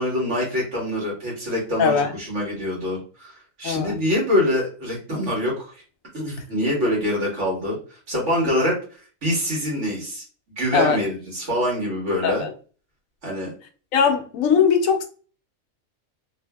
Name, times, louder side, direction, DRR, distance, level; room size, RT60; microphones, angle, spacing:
voice 1, 0.0-5.7 6.1-7.8 8.1-8.8 9.2-10.2 10.6-12.4 13.2-13.5, left 1 dB, 60° right, 1.7 m, -25 dB
voice 2, 1.8-2.1 3.6-4.0 10.7-11.0 12.2-12.5 13.9-15.0, left 6 dB, 80° left, 1.0 m, -20 dB
3.2 x 2.6 x 2.2 m
omnidirectional pair, 1.4 m